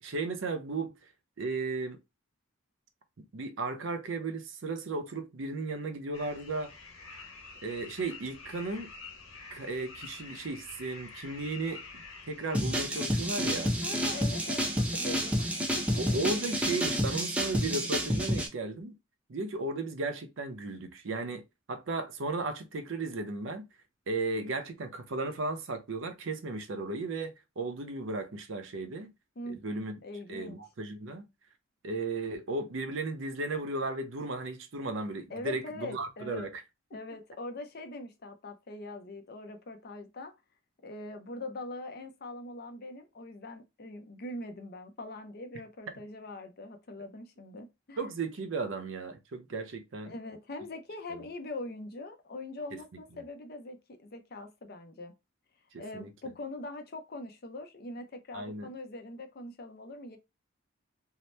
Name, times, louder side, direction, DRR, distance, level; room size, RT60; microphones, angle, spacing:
voice 1, 0.0-0.9 1.4-2.0 3.3-6.7 7.6-8.9 9.5-13.7 16.0-18.9 19.3-21.4 21.7-23.6 24.1-29.1 29.5-30.0 30.3-31.2 31.8-36.6 48.0-50.1 51.1-51.2 55.7-56.1 58.3-58.7, right 3 dB, 70° right, 0.5 m, -35 dB
sound 1, 6.1-12.6, left 4 dB, 85° left, 0.9 m, -48 dB
sound 2, 12.5-18.5, equal, 5° right, 0.4 m, -29 dB
voice 2, 13.8-16.2 29.4-30.6 35.3-36.5 36.9-40.3 40.8-48.0 50.1-55.1 55.8-60.2, left 2 dB, 50° left, 0.5 m, -42 dB
2.7 x 2.0 x 3.2 m
head